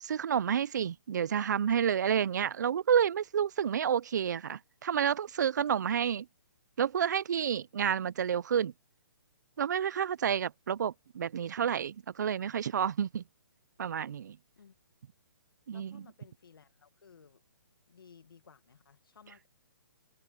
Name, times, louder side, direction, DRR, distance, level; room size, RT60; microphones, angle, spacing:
voice 1, 0.0-6.3 6.8-8.7 9.6-13.2 13.8-14.4 15.7-16.0, right 8 dB, 55° right, 0.4 m, -30 dB
voice 2, 15.7-17.4 17.9-19.5, left 6 dB, 85° left, 1.9 m, -58 dB
hypercardioid pair, 170°, 12 cm